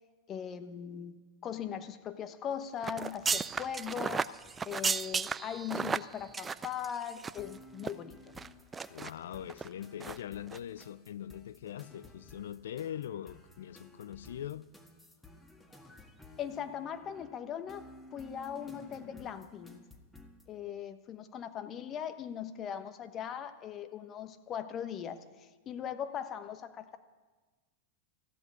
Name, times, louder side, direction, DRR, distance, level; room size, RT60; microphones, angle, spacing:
voice 1, 0.3-4.3 4.6-8.2 16.4-19.9 20.5-27.0, left 8 dB, 35° left, 1.1 m, -40 dB
sound 1, 2.8-7.5 7.8-7.9 8.4-9.1 9.5-9.7 10.0-10.2 10.5-10.6, right 5 dB, 20° right, 0.4 m, -34 dB
sound 2, 7.4-20.5, left 1 dB, 10° left, 1.8 m, -55 dB
voice 2, 8.9-14.7, left 10 dB, 75° left, 0.4 m, -42 dB
14.5 x 8.3 x 9.7 m
hypercardioid pair, 95°, 0 cm